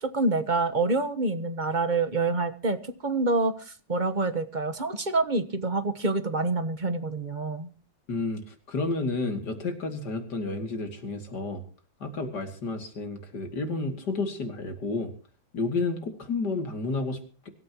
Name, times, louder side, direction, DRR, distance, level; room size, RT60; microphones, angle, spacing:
voice 1, 0.0-7.7, right 3 dB, 30° right, 11 dB, 1.1 m, -27 dB
voice 2, 8.1-11.6 12.0-15.1 15.5-17.5, left 3 dB, 65° left, 6 dB, 3.1 m, -31 dB
24.5 x 13.0 x 3.0 m, 0.39 s
omnidirectional pair, 1.9 m